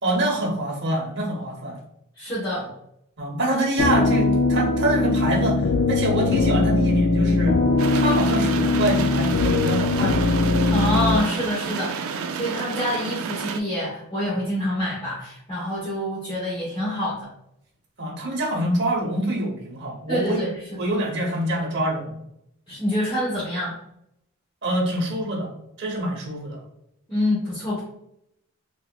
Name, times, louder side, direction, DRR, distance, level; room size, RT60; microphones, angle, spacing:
voice 1, 0.0-1.8 3.2-5.6 5.9-7.6 8.0-10.2 18.0-20.5 20.8-22.2 24.6-25.5 25.8-26.6, right 1 dB, 50° right, -1 dB, 0.8 m, -25 dB
voice 2, 2.2-2.7 10.7-17.3 20.1-20.9 22.7-23.8 27.1-27.8, left 1 dB, 20° left, -9 dB, 0.8 m, -27 dB
sound 1, 3.8-11.2, left 3 dB, 50° left, 0.3 m, -21 dB
sound 2, 7.8-13.6, right 6 dB, 70° right, 0.3 m, -30 dB
4.0 x 2.8 x 2.2 m, 0.77 s
head